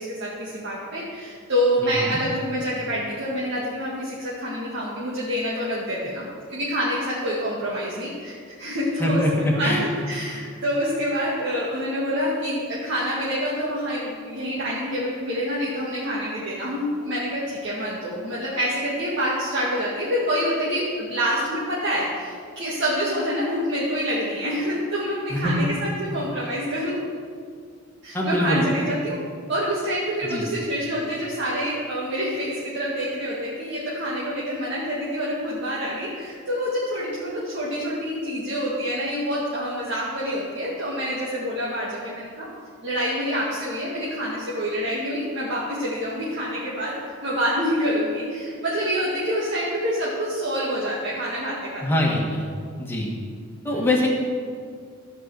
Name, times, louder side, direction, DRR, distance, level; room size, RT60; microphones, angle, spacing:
voice 1, 0.0-27.0 28.0-29.2 29.5-42.5 42.8-51.8 53.7-53.8, equal, 60° right, -7 dB, 2.1 m, -27 dB
voice 2, 1.8-2.2 9.0-10.0 25.3-25.5 28.1-28.7 30.2-30.5 51.8-52.5 52.8-53.1 53.6-54.1, left 1 dB, 10° left, -2 dB, 1.9 m, -23 dB
14.0 x 5.5 x 7.9 m, 2.1 s
head